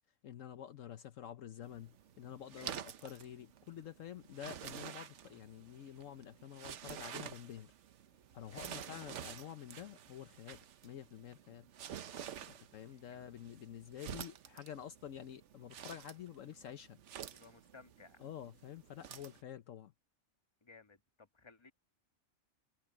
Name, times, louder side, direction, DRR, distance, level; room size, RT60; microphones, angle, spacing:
voice 1, 0.2-7.7 8.3-11.7 12.7-17.0 18.2-19.9, left 10 dB, 70° left, 1.1 m, -49 dB
sound 1, 1.6-19.4, right 9 dB, 60° right, 1.1 m, -50 dB
voice 2, 2.6-2.9 8.5-9.1 13.1-13.3 17.3-18.3 20.6-21.7, left 4 dB, 20° left, 1.5 m, -59 dB
omnidirectional pair, 1.4 m